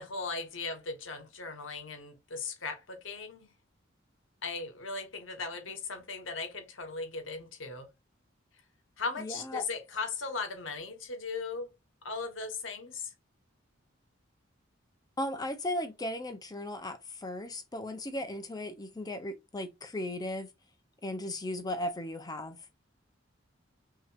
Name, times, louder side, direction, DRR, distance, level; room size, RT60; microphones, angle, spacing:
voice 1, 0.0-3.5 4.4-7.9 9.0-11.7 12.0-13.1, left 4 dB, 75° left, 1.2 m, -38 dB
voice 2, 9.2-9.6 15.2-20.5 21.0-22.6, left 1 dB, 20° left, 0.6 m, -36 dB
5.9 x 2.8 x 2.5 m
head